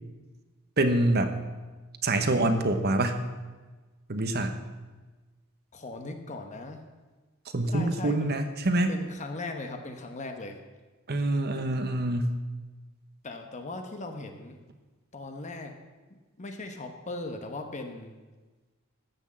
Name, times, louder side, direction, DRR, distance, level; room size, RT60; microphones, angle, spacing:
voice 1, 0.8-1.3 2.0-3.3 4.1-4.6 7.5-8.9 11.1-12.3, right 1 dB, 50° right, 8 dB, 1.0 m, -25 dB
voice 2, 5.7-6.8 7.7-8.3 8.9-10.6 13.2-14.6 15.1-15.8 16.4-18.1, left 2 dB, 35° left, 5 dB, 1.0 m, -38 dB
13.5 x 6.3 x 7.5 m, 1.3 s
head